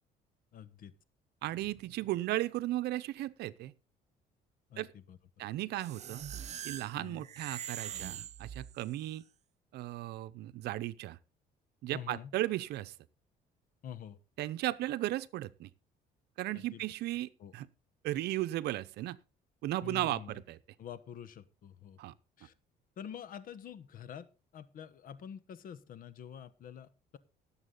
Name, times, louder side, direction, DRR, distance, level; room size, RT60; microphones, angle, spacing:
voice 1, 0.5-0.9 4.7-5.2 6.9-7.3 11.9-12.3 13.8-14.2 16.5-16.8 17.4-17.5 19.8-20.4 20.8-22.0 22.4-22.5 23.0-24.3 24.5-27.2, left 9 dB, 55° left, 16 dB, 1.2 m, -47 dB
voice 2, 1.4-3.7 4.8-4.9 5.4-6.2 6.6-9.2 9.7-11.2 11.8-12.9 14.4-15.7 16.4-17.7 18.0-19.2 19.6-20.6 22.0-22.1, right 15 dB, 75° right, 15 dB, 0.8 m, -35 dB
sound 1, 5.8-9.1, right 10 dB, 40° right, 0.5 m, -43 dB
18.0 x 7.3 x 3.9 m, 0.31 s
cardioid pair, 110°, 17 cm